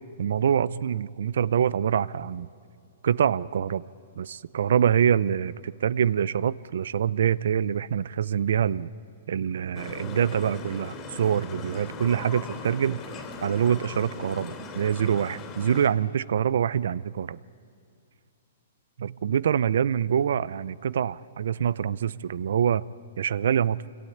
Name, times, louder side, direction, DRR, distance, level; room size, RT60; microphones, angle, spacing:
voice 1, 0.2-2.5 3.0-3.8 4.2-8.9 9.3-13.0 13.4-17.4 19.0-22.8 23.2-23.8, right 8 dB, 70° right, 21 dB, 0.6 m, -25 dB
sound 1, 9.7-15.9, left 3 dB, 20° left, 3.1 m, -39 dB
25.5 x 25.5 x 8.7 m, 2.6 s
hypercardioid pair, 160°, 0 cm